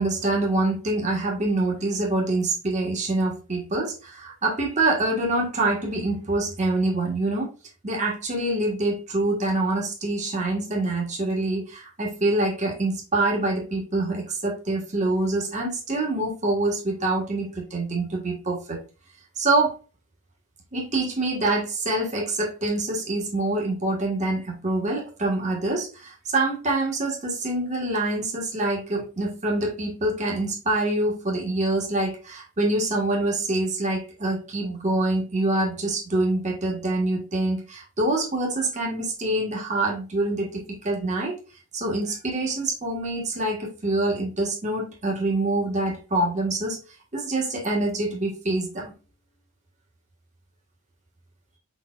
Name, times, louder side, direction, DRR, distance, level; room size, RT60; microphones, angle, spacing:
voice 1, 0.0-7.5 7.8-18.8 19.4-19.8 20.7-41.4 41.7-46.8 47.1-48.9, right 2 dB, 30° right, -1 dB, 1.4 m, -25 dB
5.1 x 4.3 x 2.3 m, 0.32 s
head